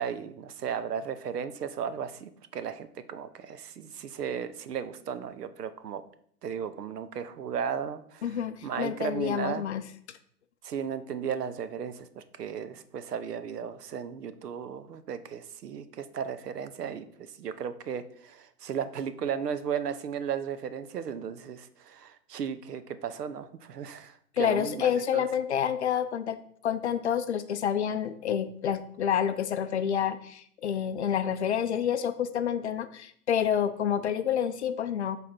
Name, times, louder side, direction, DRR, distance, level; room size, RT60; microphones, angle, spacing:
voice 1, 0.0-6.0 6.4-9.6 10.6-17.1 17.4-25.3, right 7 dB, 75° right, 12 dB, 0.7 m, -35 dB
voice 2, 8.2-9.8 24.4-26.4 26.6-35.2, left 9 dB, 45° left, 10 dB, 0.4 m, -28 dB
6.3 x 3.5 x 4.3 m, 0.63 s
hypercardioid pair, 125°, 48 cm